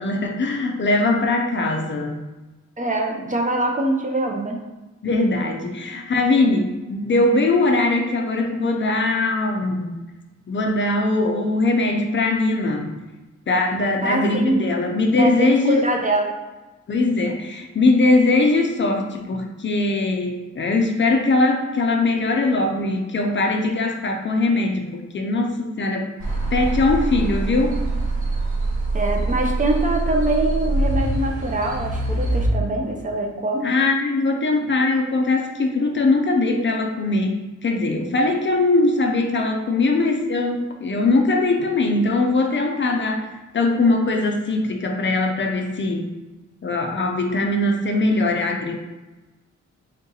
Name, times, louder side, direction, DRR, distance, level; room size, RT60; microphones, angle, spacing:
voice 1, 0.0-2.2 5.0-10.0 10.5-12.9 13.5-15.8 16.9-26.1 26.5-27.8 33.6-37.4 37.6-43.3 43.5-46.0 46.6-48.8, left 2 dB, 40° left, 2 dB, 0.4 m, -21 dB
voice 2, 2.8-4.6 14.0-14.6 15.2-16.3 28.9-33.7, right 1 dB, 25° right, 1 dB, 0.5 m, -23 dB
sound 1, 26.2-32.5, right 2 dB, 80° right, 1.1 m, -24 dB
3.6 x 2.7 x 3.9 m, 1.2 s
wide cardioid pair, 140°, 30 cm